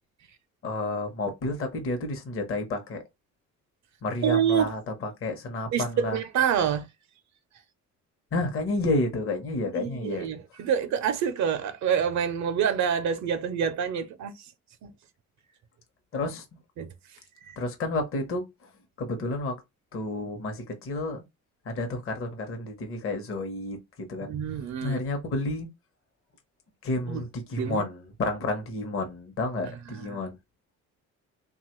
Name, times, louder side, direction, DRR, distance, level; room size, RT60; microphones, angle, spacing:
voice 1, 0.6-3.0 4.0-6.2 8.3-10.3 16.1-16.4 17.6-18.7 19.0-19.6 19.9-21.2 21.6-24.3 24.8-25.7 26.8-30.4, left 2 dB, 45° left, 0.8 m, -30 dB
voice 2, 4.2-4.7 5.7-6.9 9.7-14.5 14.8-14.9 16.8-16.9 17.5-17.6 24.2-25.0 27.1-27.2 27.6-27.9 29.9-30.2, right 8 dB, 70° right, 0.5 m, -27 dB
2.8 x 2.3 x 2.9 m
cardioid pair, 90°, 30 cm